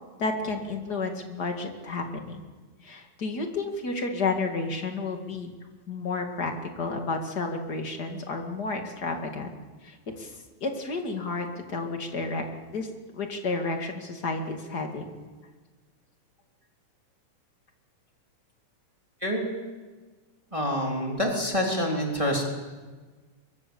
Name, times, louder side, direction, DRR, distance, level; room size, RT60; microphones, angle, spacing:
voice 1, 0.2-2.4 2.8-5.5 5.9-9.5 9.8-12.5 12.7-15.2, left 3 dB, 35° left, 4 dB, 2.6 m, -31 dB
voice 2, 19.2-19.6 20.5-22.4, equal, 10° right, 0 dB, 3.0 m, -27 dB
23.5 x 23.0 x 7.1 m, 1.4 s
omnidirectional pair, 3.5 m